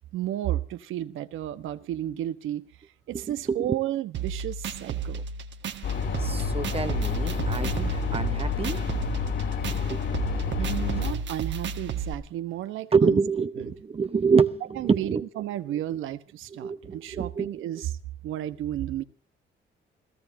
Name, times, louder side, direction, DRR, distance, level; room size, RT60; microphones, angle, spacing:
voice 1, 0.1-2.7 3.1-5.2 10.6-13.2 13.6-13.7 14.7-19.0, right 13 dB, 90° right, 1.3 m, -32 dB
voice 2, 3.1-3.8 5.1-5.2 6.2-8.8 9.8-10.0 12.9-15.2 16.5-17.5, right 5 dB, 30° right, 0.8 m, -26 dB
sound 1, 4.1-12.1, right 7 dB, 65° right, 1.8 m, -33 dB
sound 2, 5.8-11.1, left 6 dB, 75° left, 4.6 m, -29 dB
29.5 x 15.5 x 2.8 m
cardioid pair, 90°, 20 cm